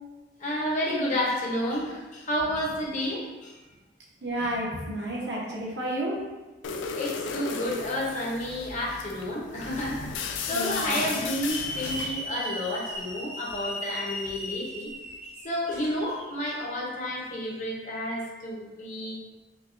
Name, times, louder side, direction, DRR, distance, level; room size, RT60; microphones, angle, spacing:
voice 1, 0.4-3.6 6.7-14.9 15.2-19.2, left 1 dB, 40° left, -4 dB, 0.9 m, -31 dB
voice 2, 4.2-6.2 10.5-11.0, right 1 dB, 65° right, -5 dB, 1.0 m, -31 dB
sound 1, 6.6-12.2, left 5 dB, 90° left, 0.4 m, -35 dB
Hiss / Alarm, 11.5-16.3, equal, 40° right, 0.7 m, -37 dB
5.0 x 2.3 x 2.6 m, 1.2 s
head